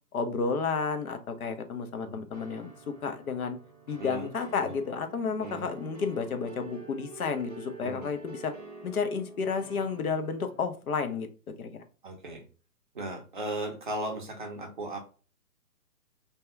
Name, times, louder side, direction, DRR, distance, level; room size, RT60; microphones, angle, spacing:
voice 1, 0.1-3.6 3.9-8.5 8.8-11.3 11.6-11.8, left 5 dB, 65° left, 7 dB, 0.7 m, -31 dB
sound 1, 2.3-10.6, right 3 dB, 30° left, 0.4 m, -47 dB
voice 2, 4.0-4.3 5.4-5.6 7.8-8.1 12.0-12.4 12.9-15.0, right 1 dB, 35° right, 1 dB, 0.5 m, -36 dB
2.8 x 2.3 x 3.4 m, 0.35 s
hypercardioid pair, 150°, 47 cm